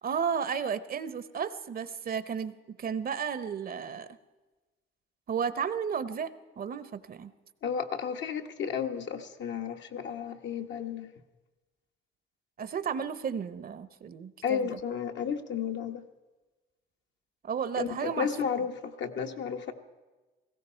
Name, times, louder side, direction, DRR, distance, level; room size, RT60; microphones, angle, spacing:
voice 1, 0.0-4.1 5.3-7.3 12.6-14.7 17.4-18.3, right 7 dB, 50° right, 14 dB, 0.8 m, -33 dB
voice 2, 7.6-11.1 14.4-16.0 17.8-19.7, left 7 dB, 65° left, 5 dB, 1.2 m, -33 dB
18.5 x 16.0 x 4.4 m, 1.2 s
cardioid pair, 90°, 20 cm